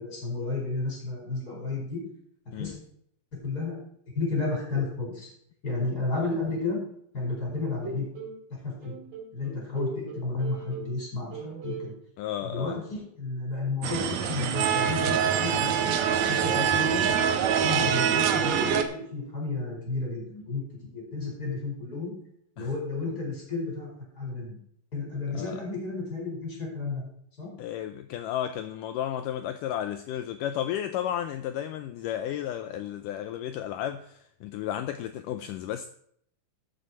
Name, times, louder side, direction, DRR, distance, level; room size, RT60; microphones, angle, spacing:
voice 1, 0.0-2.0 2.6-2.7 3.4-3.7 4.2-5.3 5.6-6.8 7.1-8.1 8.6-8.9 9.3-11.9 12.4-17.0 17.6-20.6 20.9-22.1 22.6-23.9 24.2-24.6 24.9-27.0 27.4-27.5, left 3 dB, 25° left, 5.4 m, -32 dB
sound 1, 7.5-8.4 8.8-11.0 11.3-11.9, right 4 dB, 35° right, 4.0 m, -39 dB
voice 2, 12.2-12.8 22.6-22.7 25.3-25.6 27.6-35.9, left 11 dB, 90° left, 1.8 m, -33 dB
sound 2, 13.8-18.8, right 8 dB, 70° right, 1.8 m, -24 dB
13.5 x 7.7 x 4.5 m
omnidirectional pair, 4.3 m